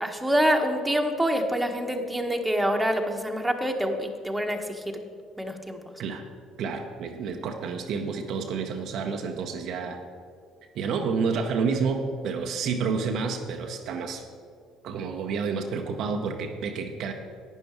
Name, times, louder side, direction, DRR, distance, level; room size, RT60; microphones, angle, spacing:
voice 1, 0.0-5.0 5.4-5.8, equal, 5° right, 3 dB, 1.4 m, -26 dB
voice 2, 6.6-10.0 10.7-14.3 14.8-17.1, right 5 dB, 55° right, 4 dB, 0.8 m, -29 dB
11.5 x 9.3 x 4.6 m, 2.2 s
figure-of-eight pair, 55°, 0 cm